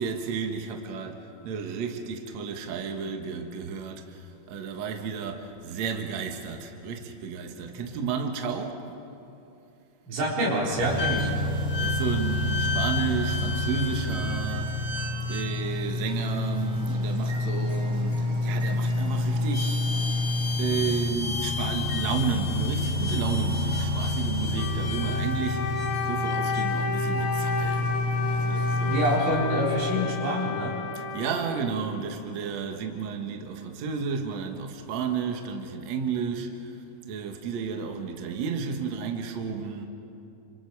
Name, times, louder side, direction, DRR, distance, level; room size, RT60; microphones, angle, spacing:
voice 1, 0.0-8.8 11.1-20.1 20.6-25.8 26.0-29.0 31.0-39.9, right 6 dB, 60° right, 1.8 m, -32 dB
voice 2, 10.1-11.3 28.9-30.7, right 1 dB, 80° right, 6.7 m, -26 dB
sound 1, 10.8-29.2, left 2 dB, 10° right, 4.4 m, -28 dB
Wind instrument woodwind instrument, 24.5-32.1, left 4 dB, 60° left, 2.9 m, -32 dB
29.0 x 26.0 x 4.8 m
omnidirectional pair, 5.3 m